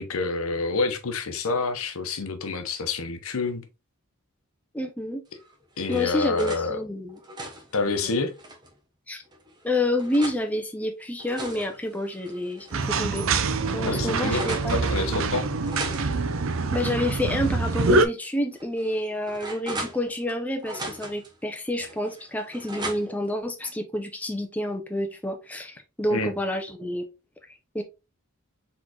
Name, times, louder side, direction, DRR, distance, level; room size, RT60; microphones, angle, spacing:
voice 1, 0.0-3.6 5.8-6.8 7.7-8.3 13.9-15.5 26.1-26.3, left 3 dB, 75° left, 0.8 m, -28 dB
voice 2, 4.7-5.2 5.9-7.2 8.0-8.2 9.1-9.2 9.6-13.3 13.7-14.9 15.1-15.2 16.7-27.1 27.7-27.8, left 1 dB, 5° left, 0.6 m, -29 dB
sound 1, 5.4-6.7 7.1-8.7 9.3-10.4 11.0-12.7 13.1-13.2 13.5-14.7 15.6-17.5 17.8-17.9 18.5-20.3 20.6-21.3 21.8-23.3, right 1 dB, 20° right, 0.9 m, -39 dB
sound 2, 12.7-18.1, right 3 dB, 65° right, 0.5 m, -25 dB
4.2 x 3.8 x 2.9 m
head